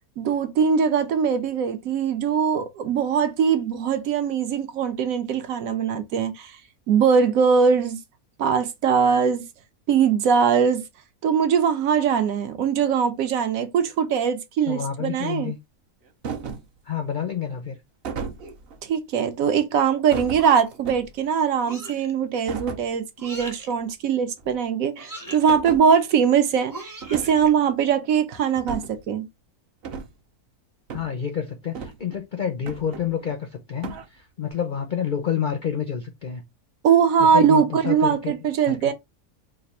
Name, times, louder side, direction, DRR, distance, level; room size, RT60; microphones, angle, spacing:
voice 1, 0.2-6.6 6.9-8.0 8.4-9.4 9.9-10.8 11.2-15.5 18.8-29.2 36.8-38.9, right 7 dB, 70° right, 1.0 m, -21 dB
voice 2, 14.7-15.6 16.9-17.8 30.9-36.4 37.2-38.3 38.7-38.9, left 8 dB, 70° left, 0.4 m, -29 dB
sound 1, 16.2-16.8 18.0-18.8 20.1-21.3 22.5-22.9 23.3-23.5 23.8-23.9 24.4-24.5 25.5-25.9 27.0-27.5 28.5-29.0 29.8-30.1 30.9-31.1 31.7-32.2 32.7-33.4 33.8-34.1, right 5 dB, 55° right, 0.7 m, -35 dB
sound 2, 20.4-20.9 21.7-22.1 23.2-23.7 25.0-25.5 26.7-27.5, right 1 dB, 20° right, 0.7 m, -39 dB
3.3 x 2.5 x 4.1 m
omnidirectional pair, 1.6 m